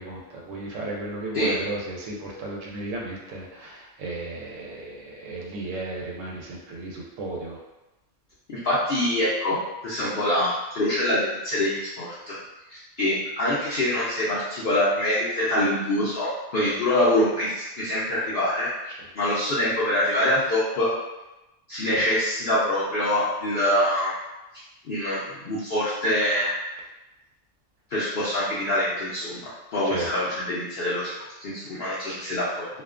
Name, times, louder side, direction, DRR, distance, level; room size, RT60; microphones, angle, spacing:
voice 1, 0.0-7.6 29.8-30.1 32.1-32.2, right 2 dB, 90° right, -2 dB, 0.9 m, -34 dB
voice 2, 8.5-9.6 9.8-12.3 12.7-18.7 19.2-20.9 21.7-24.1 24.8-26.5 27.9-29.4 29.7-31.1 31.4-32.7, left 1 dB, 60° left, -10 dB, 0.7 m, -25 dB
2.4 x 2.2 x 2.4 m, 1.0 s
omnidirectional pair, 1.3 m